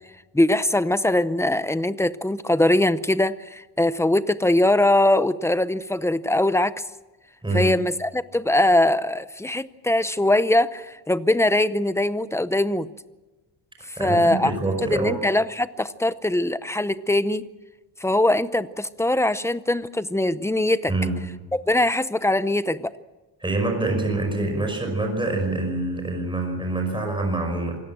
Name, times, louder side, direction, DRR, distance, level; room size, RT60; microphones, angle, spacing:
voice 1, 0.3-6.7 7.5-12.9 13.9-14.5 14.8-17.5 18.0-20.9 21.5-22.9, left 1 dB, 5° left, 14 dB, 0.7 m, -21 dB
voice 2, 14.0-15.2 20.9-21.2 23.4-27.8, right 2 dB, 10° right, 3 dB, 5.5 m, -25 dB
26.5 x 18.0 x 7.6 m, 1.1 s
wide cardioid pair, 135°, 43 cm